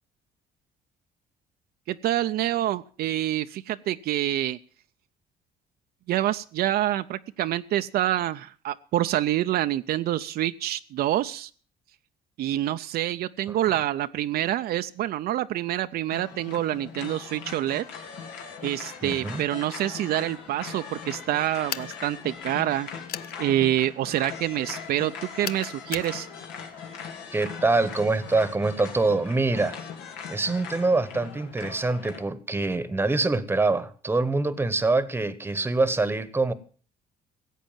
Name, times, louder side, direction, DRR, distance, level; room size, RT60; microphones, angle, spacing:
voice 1, 1.9-4.6 6.1-11.5 12.4-17.9 18.6-22.9 23.4-26.3, right 13 dB, 65° right, 0.6 m, -27 dB
sound 1, 16.1-32.2, left 6 dB, 90° left, 2.9 m, -40 dB
voice 2, 19.0-19.4 27.3-29.8 30.3-36.5, right 3 dB, 15° right, 1.1 m, -25 dB
sound 2, 21.7-22.0 23.1-23.3 25.4-26.1, left 11 dB, 60° left, 0.6 m, -34 dB
16.0 x 8.3 x 7.3 m
cardioid pair, 110°, 17 cm